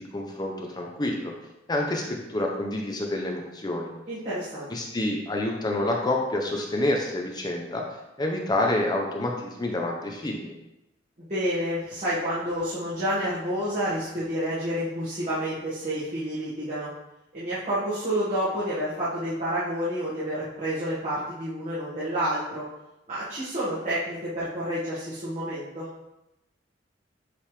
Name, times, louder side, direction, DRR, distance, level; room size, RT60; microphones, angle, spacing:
voice 1, 0.0-1.3 1.7-3.9 4.7-7.8 8.2-10.5, left 1 dB, 20° left, 0 dB, 0.6 m, -28 dB
voice 2, 4.1-4.7 11.2-16.9 17.3-22.6 23.1-25.9, equal, 40° right, -11 dB, 1.8 m, -29 dB
8.3 x 3.5 x 3.3 m, 0.91 s
head